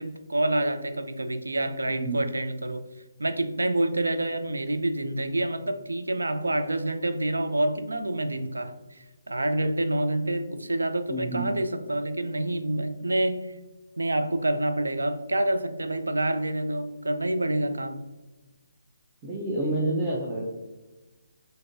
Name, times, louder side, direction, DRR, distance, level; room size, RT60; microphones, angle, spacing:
voice 1, 0.0-2.8 3.2-8.7 9.3-13.5 14.0-18.0, right 1 dB, 80° right, 9 dB, 0.3 m, -27 dB
voice 2, 1.9-2.2 11.1-11.5 19.2-20.4, right 2 dB, 20° right, -5 dB, 0.5 m, -29 dB
3.7 x 2.6 x 2.6 m, 1.1 s
figure-of-eight pair, 140°, 0 cm